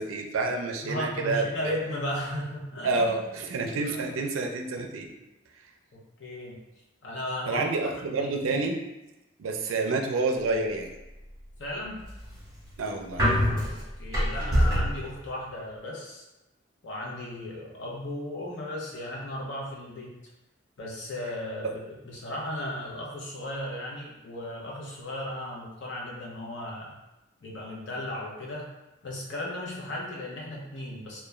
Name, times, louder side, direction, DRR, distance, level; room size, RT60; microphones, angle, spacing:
voice 1, 0.0-1.7 2.8-5.1 7.5-8.8 9.4-10.9 12.8-13.4, right 3 dB, 90° right, 3 dB, 0.4 m, -28 dB
voice 2, 0.8-3.3 3.8-4.1 5.9-6.6 7.0-8.3 11.6-12.0 13.7-16.2 16.8-20.2 20.8-27.0 27.4-28.7 29.0-31.2, left 1 dB, 65° left, -3 dB, 0.6 m, -36 dB
sound 1, 11.8-15.0, equal, 20° right, 0.9 m, -25 dB
2.3 x 2.2 x 3.0 m, 0.97 s
head